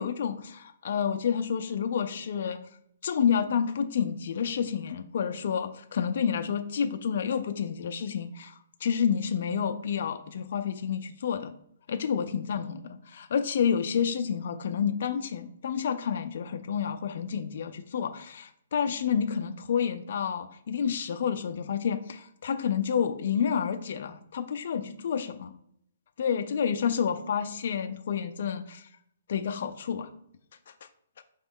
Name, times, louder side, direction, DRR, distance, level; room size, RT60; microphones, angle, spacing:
voice 1, 0.0-2.6 3.0-11.5 11.9-25.5 26.2-28.9 29.3-30.1 30.7-30.9, left 7 dB, 55° left, 7 dB, 0.4 m, -29 dB
4.7 x 3.1 x 3.6 m, 0.72 s
hypercardioid pair, 165°, 0 cm